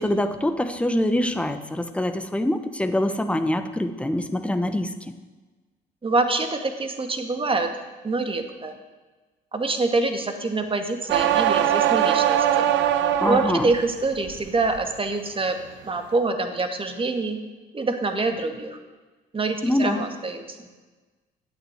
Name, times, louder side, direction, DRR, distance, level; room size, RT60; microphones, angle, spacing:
voice 1, 0.0-5.1 13.2-13.7 19.6-20.1, left 1 dB, 5° left, 8 dB, 1.2 m, -24 dB
voice 2, 6.0-7.7 8.0-8.7 9.5-12.7 13.3-15.6 15.8-17.4 17.7-18.8 19.3-20.7, right 3 dB, 30° right, 6 dB, 2.0 m, -25 dB
sound 1, 11.1-13.8 14.2-14.8, right 10 dB, 75° right, 0.8 m, -21 dB
11.0 x 8.9 x 8.1 m, 1.3 s
supercardioid pair, 75°, 19 cm